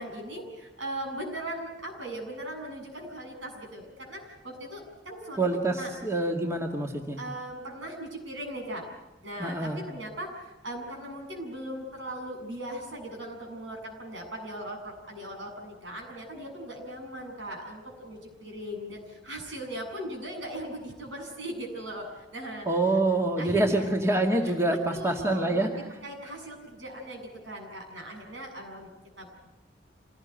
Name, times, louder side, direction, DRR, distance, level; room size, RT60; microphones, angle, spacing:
voice 1, 0.0-6.0 7.2-8.9 9.2-22.7 23.4-23.9 24.4-28.9 29.2-29.3, right 1 dB, 80° right, 2 dB, 7.7 m, -39 dB
voice 2, 5.4-7.2 9.4-9.8 22.7-25.7, right 2 dB, 15° right, 1 dB, 2.1 m, -26 dB
26.5 x 19.0 x 9.3 m, 1.0 s
head